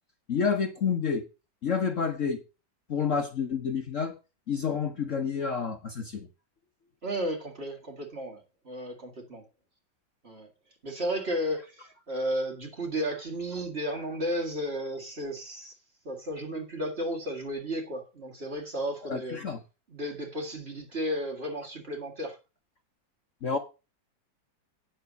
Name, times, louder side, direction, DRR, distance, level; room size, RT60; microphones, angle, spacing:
voice 1, 0.3-1.2 1.6-2.4 2.9-4.1 4.5-6.3 19.1-19.6 23.4-23.6, left 6 dB, 50° left, 1.2 m, -29 dB
voice 2, 7.0-9.4 10.2-10.5 10.8-15.7 16.0-19.4 19.9-22.4, equal, 35° right, 2.1 m, -33 dB
9.1 x 7.1 x 5.2 m
omnidirectional pair, 2.0 m